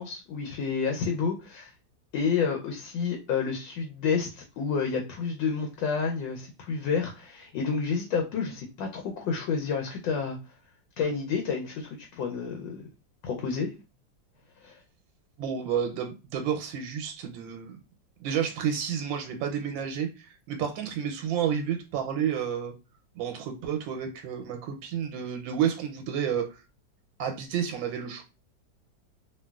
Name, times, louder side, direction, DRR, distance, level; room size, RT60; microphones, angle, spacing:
voice 1, 0.0-1.7 2.1-10.4 11.0-12.8 13.2-13.7 14.6-14.8, left 5 dB, 80° left, 1.3 m, -30 dB
voice 2, 15.4-17.7 18.2-22.7 23.1-26.6 27.2-28.2, right 8 dB, 85° right, 1.3 m, -30 dB
2.9 x 2.6 x 2.3 m
omnidirectional pair, 2.0 m